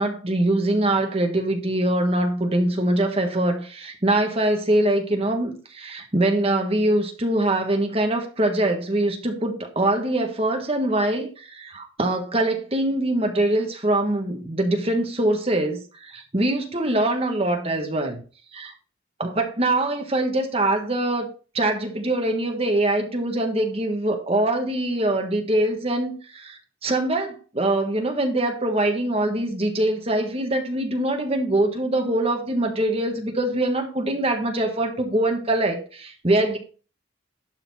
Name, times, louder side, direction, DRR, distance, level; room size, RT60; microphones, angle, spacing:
voice 1, 0.0-18.2 18.5-18.7 19.2-36.6, right 1 dB, 30° right, 1.3 m, -23 dB
11.5 x 4.1 x 4.1 m
head